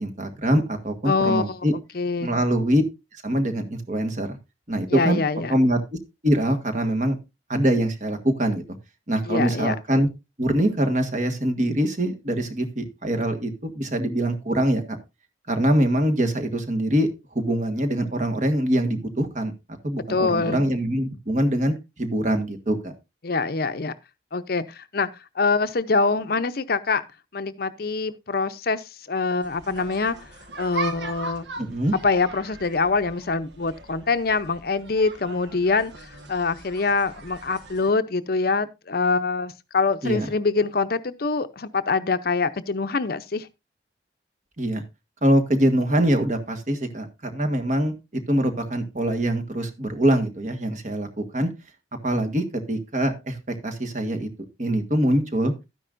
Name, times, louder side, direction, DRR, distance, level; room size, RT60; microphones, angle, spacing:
voice 1, 0.0-1.7 2.2-2.8 3.2-4.3 4.7-5.2 5.5-5.8 6.2-7.2 7.5-8.6 9.1-10.1 10.4-15.0 15.5-17.1 17.3-19.5 19.8-22.9 31.6-31.9 40.0-40.3 44.6-44.8 45.2-47.9 48.3-51.5 52.0-53.4 53.6-54.3 54.6-55.5, right 1 dB, 40° right, 1.6 m, -23 dB
voice 2, 1.1-1.6 1.9-2.4 4.9-5.5 9.3-9.8 20.1-20.7 23.2-23.9 24.3-25.1 25.4-27.0 27.3-30.2 30.6-31.5 32.0-43.5, left 4 dB, 55° left, 0.6 m, -24 dB
sound 1, 29.4-37.9, right 3 dB, 70° right, 1.4 m, -39 dB
12.5 x 10.0 x 2.5 m
head